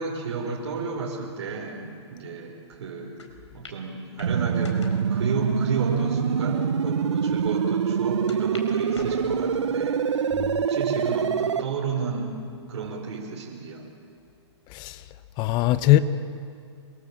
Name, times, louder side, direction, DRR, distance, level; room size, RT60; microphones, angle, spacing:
voice 1, 0.0-3.2 3.5-4.8 5.1-10.4 10.7-12.4 12.7-13.9, right 4 dB, 65° right, 5.4 m, -32 dB
sound 1, 3.2-3.3 3.6-3.8 4.2-5.1 5.7-5.8 6.5-6.6 6.9-7.0 8.3-8.7 8.9-9.7 10.3-10.7 11.2-11.3 12.5-12.9, left 3 dB, 90° left, 4.7 m, -43 dB
sound 2, 4.2-11.6, right 7 dB, 80° right, 1.1 m, -25 dB
voice 2, 14.7-15.0 15.4-16.0, left 15 dB, 30° left, 0.9 m, -21 dB
27.5 x 23.5 x 7.6 m
hypercardioid pair, 135°, 15 cm